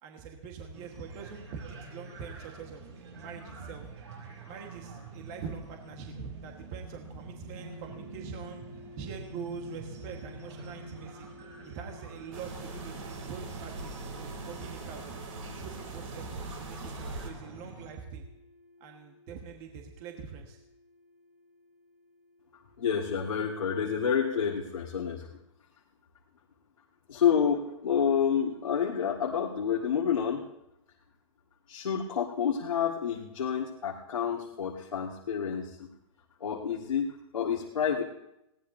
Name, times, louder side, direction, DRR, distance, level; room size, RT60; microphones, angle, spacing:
voice 1, 0.0-3.9 4.5-8.6 9.0-11.3 11.7-15.1 15.6-18.3 18.8-20.6, right 6 dB, 35° right, 3 dB, 1.5 m, -44 dB
sound 1, 0.7-17.9, right 3 dB, 55° right, 5.1 m, -47 dB
sound 2, 7.5-25.5, left 2 dB, 5° right, 3.1 m, -55 dB
sound 3, 12.3-17.3, right 2 dB, 75° right, 3.4 m, -41 dB
voice 2, 22.8-25.3 27.1-30.4 31.7-35.9 36.4-38.0, left 7 dB, 90° left, -2 dB, 1.9 m, -29 dB
20.5 x 17.5 x 2.7 m, 0.85 s
hypercardioid pair, 150°, 17 cm